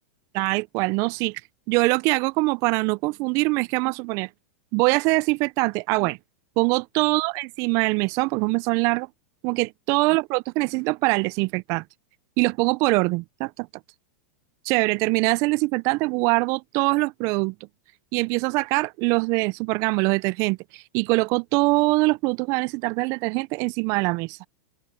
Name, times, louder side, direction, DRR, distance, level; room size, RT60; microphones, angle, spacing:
voice 1, 0.3-1.4 1.7-4.3 4.7-6.2 6.6-9.1 9.4-11.8 12.4-13.7 14.7-17.5 18.1-24.4, right 26 dB, 40° right, 0.4 m, -23 dB
open air
supercardioid pair, 140°, 8 cm